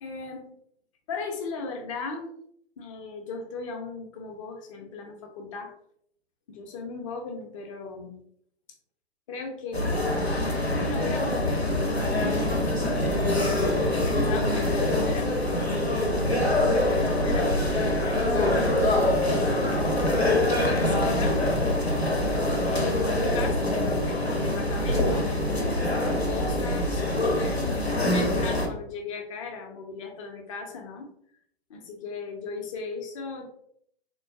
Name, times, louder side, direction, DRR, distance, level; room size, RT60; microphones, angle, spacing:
voice 1, 0.0-0.5 1.1-2.3 2.8-5.7 6.5-8.2 9.3-10.2 10.8-13.8 14.0-15.3 16.3-18.6 19.2-20.1 20.6-21.4 22.6-25.3 25.8-31.1 31.7-33.5, left 4 dB, 30° left, 3 dB, 0.6 m, -37 dB
sound 1, 9.7-28.7, left 1 dB, 90° left, 0.7 m, -24 dB
3.7 x 2.2 x 2.5 m, 0.68 s
figure-of-eight pair, 115°, 31 cm